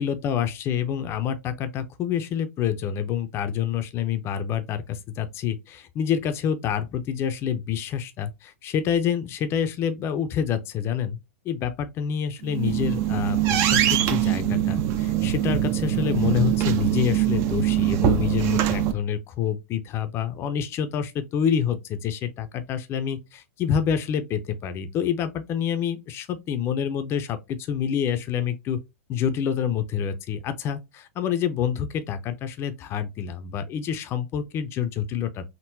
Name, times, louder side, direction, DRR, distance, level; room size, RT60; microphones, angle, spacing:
voice 1, 0.0-11.2 11.4-28.8 29.1-35.4, left 8 dB, 35° left, 0.5 m, -27 dB
sound 1, 12.4-18.9, right 11 dB, 40° right, 0.5 m, -23 dB
3.7 x 2.1 x 2.6 m
hypercardioid pair, 110°, 8 cm